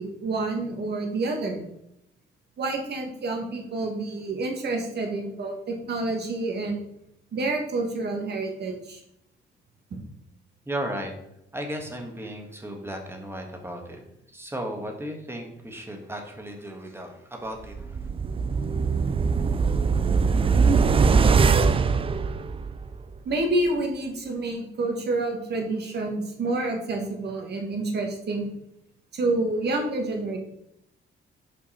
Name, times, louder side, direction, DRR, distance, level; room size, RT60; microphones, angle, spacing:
voice 1, 0.0-1.6 2.6-6.8 7.3-9.0 9.9-10.0 23.2-28.5 29.1-30.4, right 2 dB, 55° right, 3 dB, 1.6 m, -28 dB
voice 2, 10.6-11.1 11.5-14.0 14.3-18.1, right 1 dB, 10° right, 2 dB, 1.5 m, -35 dB
sound 1, 17.7-23.0 23.3-23.4, right 5 dB, 30° right, 0.4 m, -21 dB
5.5 x 5.2 x 4.3 m, 0.80 s
cardioid pair, 90°, 20 cm